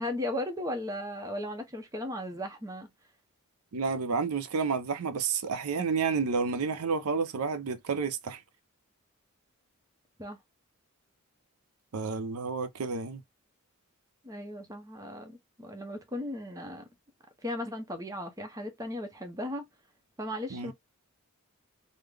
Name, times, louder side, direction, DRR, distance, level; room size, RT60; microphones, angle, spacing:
voice 1, 0.0-2.9 10.2-10.4 14.2-16.9 17.4-19.7 20.2-20.7, left 1 dB, 15° right, 0.7 m, -36 dB
voice 2, 3.7-8.4 11.9-13.2 20.5-20.7, right 5 dB, 80° right, 0.6 m, -30 dB
3.7 x 2.1 x 3.2 m
head